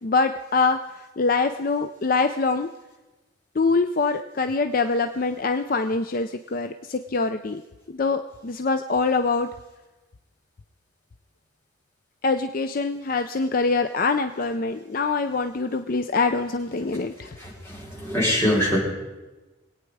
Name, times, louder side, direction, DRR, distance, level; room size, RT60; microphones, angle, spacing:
voice 1, 0.0-2.7 3.6-7.6 7.9-9.5 12.2-17.3, left 4 dB, 45° left, 8 dB, 0.5 m, -24 dB
voice 2, 17.4-18.8, equal, 15° left, -6 dB, 4.4 m, -23 dB
23.0 x 9.0 x 4.8 m, 1.1 s
head